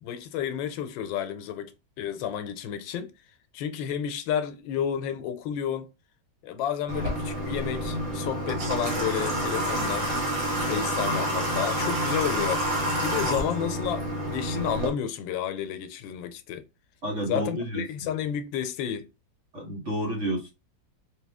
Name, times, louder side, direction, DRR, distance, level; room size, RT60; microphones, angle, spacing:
voice 1, 0.0-3.1 3.5-5.9 6.4-10.1 10.6-12.7 13.0-16.6 17.3-19.1, left 9 dB, 85° left, 1.3 m, -31 dB
Water / Water tap faucet, 6.9-14.9, equal, 70° right, 1.9 m, -28 dB
voice 2, 17.0-17.8 19.5-20.5, right 1 dB, 45° right, 1.5 m, -30 dB
3.8 x 2.9 x 3.4 m
omnidirectional pair, 2.0 m